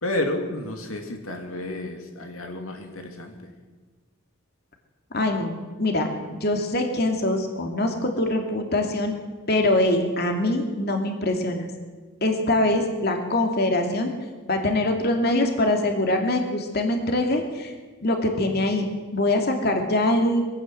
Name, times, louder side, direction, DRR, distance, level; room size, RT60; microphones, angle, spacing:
voice 1, 0.0-3.5, left 1 dB, 85° left, 4 dB, 2.9 m, -31 dB
voice 2, 5.1-5.5 5.8-9.1 9.5-11.7 12.2-14.1 14.5-17.7 18.0-20.5, left 1 dB, 50° left, 3 dB, 2.6 m, -23 dB
23.0 x 16.5 x 7.8 m, 1.4 s
head